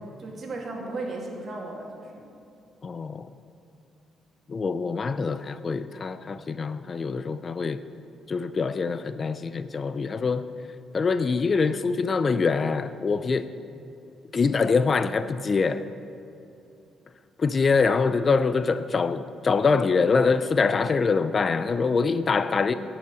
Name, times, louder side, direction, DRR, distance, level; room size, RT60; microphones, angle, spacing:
voice 1, 0.2-2.2, right 2 dB, 45° right, -1 dB, 2.2 m, -35 dB
voice 2, 2.8-3.3 4.5-7.9 8.3-10.5 10.9-13.5 14.3-15.9 17.4-22.7, left 4 dB, 40° left, 13 dB, 0.4 m, -24 dB
11.0 x 5.7 x 8.0 m, 2.7 s
cardioid pair, 90°, 0 cm